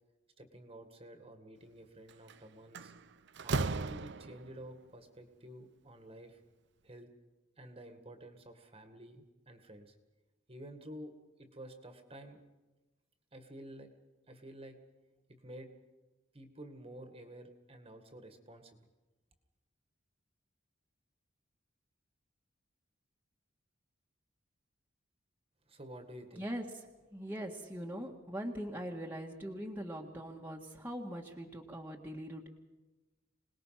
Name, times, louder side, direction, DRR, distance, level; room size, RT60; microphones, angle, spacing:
voice 1, 0.4-2.9 3.4-6.4 6.8-7.1 7.6-9.9 10.5-11.1 11.4-12.4 13.3-13.9 14.3-14.8 15.3-15.7 16.3-18.9 25.7-26.5, right 1 dB, 30° right, 7 dB, 2.0 m, -51 dB
Slam, 2.1-2.3 2.7-4.6, right 3 dB, 60° right, 0.7 m, -36 dB
voice 2, 27.1-32.5, equal, 10° right, -1 dB, 1.8 m, -41 dB
26.0 x 19.5 x 5.9 m, 1.1 s
head